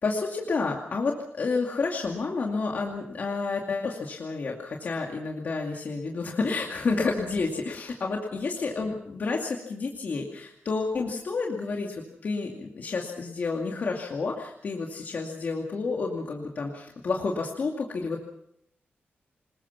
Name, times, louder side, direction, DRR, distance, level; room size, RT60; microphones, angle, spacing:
voice 1, 0.0-18.2, left 4 dB, 50° left, 0 dB, 2.4 m, -30 dB
27.0 x 21.0 x 5.8 m, 0.73 s
wide cardioid pair, 180°, 4 cm